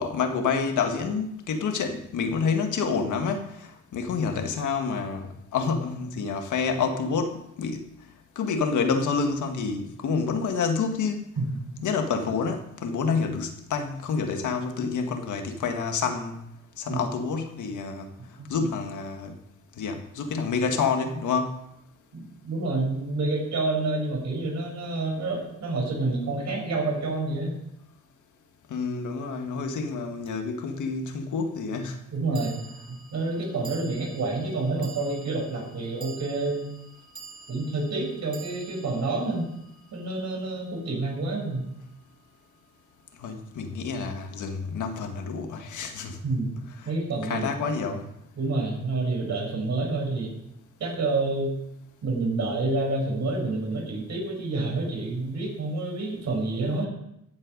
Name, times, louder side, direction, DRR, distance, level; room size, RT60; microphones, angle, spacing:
voice 1, 0.0-7.9 8.3-11.3 11.8-16.4 16.8-18.1 18.5-19.3 19.8-21.6 28.7-32.0 43.2-46.2 46.8-46.9 47.2-48.1, left 5 dB, 85° left, 1.7 m, -28 dB
voice 2, 11.5-11.9 16.9-17.0 18.4-18.5 22.1-27.5 32.1-32.6 32.9-36.7 37.5-39.5 39.9-41.6 46.2-46.5 46.8-47.5 48.4-50.3 50.8-51.5 52.0-56.9, right 2 dB, 65° right, 5.2 m, -28 dB
sound 1, 30.3-30.4 32.3-40.8, right 4 dB, 15° right, 2.5 m, -48 dB
15.0 x 7.7 x 5.3 m
cardioid pair, 115°, 29 cm